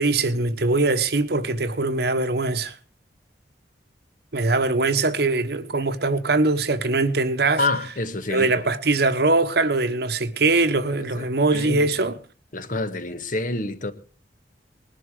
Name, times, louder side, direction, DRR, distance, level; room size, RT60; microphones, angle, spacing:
voice 1, 0.0-2.7 4.3-7.6 8.3-12.2, right 3 dB, 65° right, 1.1 m, -22 dB
voice 2, 7.6-8.6 11.0-11.3 11.5-11.9 12.5-13.9, left 2 dB, 50° left, 1.3 m, -27 dB
20.0 x 11.5 x 4.9 m
head